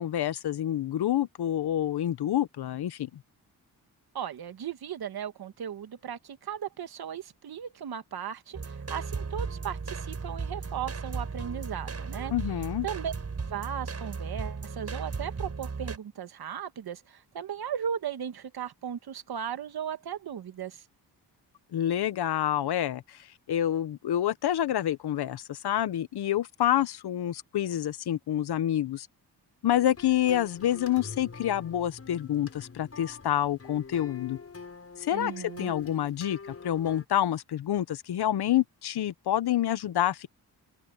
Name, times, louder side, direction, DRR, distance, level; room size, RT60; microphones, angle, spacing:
voice 1, 0.0-3.1 12.3-12.9 21.7-23.2 23.5-29.1 29.6-34.4 35.0-36.4 36.6-40.3, left 11 dB, 75° left, 1.0 m, -28 dB
voice 2, 4.1-8.6 8.9-12.3 12.8-13.1 13.5-20.8 35.1-35.7, right 8 dB, 65° right, 1.6 m, -36 dB
sound 1, 8.5-16.0, right 4 dB, 40° right, 7.0 m, -36 dB
sound 2, 29.7-37.0, left 4 dB, 35° left, 6.8 m, -45 dB
cardioid pair, 100°, 40 cm